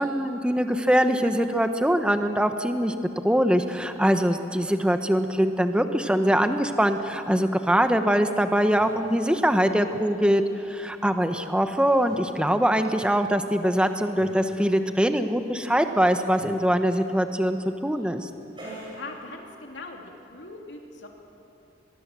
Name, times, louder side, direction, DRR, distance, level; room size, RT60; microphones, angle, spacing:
voice 1, 0.0-2.9 3.2-17.6 17.8-18.3, equal, 5° right, 7 dB, 1.0 m, -23 dB
sound 1, 8.3-19.8, right 1 dB, 25° right, 8.0 m, -49 dB
voice 2, 18.9-21.1, left 3 dB, 90° left, 1 dB, 3.1 m, -41 dB
23.5 x 22.0 x 7.6 m, 2.8 s
head